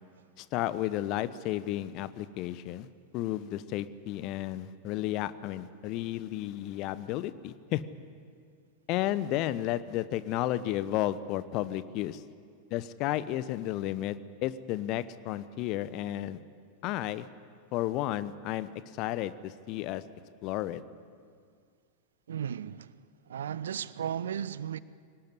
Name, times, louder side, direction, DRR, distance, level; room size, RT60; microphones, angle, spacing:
voice 1, 0.4-2.9 3.1-7.8 8.9-12.2 12.7-16.4 16.8-17.3 17.7-20.0 20.4-20.8, left 14 dB, 40° left, 1.0 m, -32 dB
voice 2, 22.3-22.9 23.3-24.8, right 9 dB, 65° right, 0.6 m, -35 dB
23.0 x 19.0 x 9.8 m
figure-of-eight pair, 90°, 0 cm